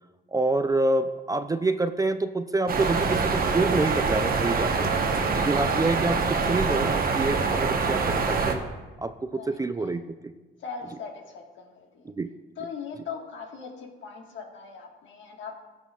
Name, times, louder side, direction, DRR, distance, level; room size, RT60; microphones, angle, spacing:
voice 1, 0.3-4.9 5.3-8.6 9.0-10.3 12.1-12.3, right 2 dB, 20° right, 10 dB, 0.3 m, -27 dB
sound 1, 2.7-8.5, right 4 dB, 50° right, 1.0 m, -25 dB
voice 2, 4.8-5.2 9.3-9.9 10.6-12.1 12.6-15.5, left 6 dB, 70° left, 1 dB, 1.5 m, -40 dB
17.5 x 6.3 x 2.4 m, 1.2 s
cardioid pair, 90°, 20 cm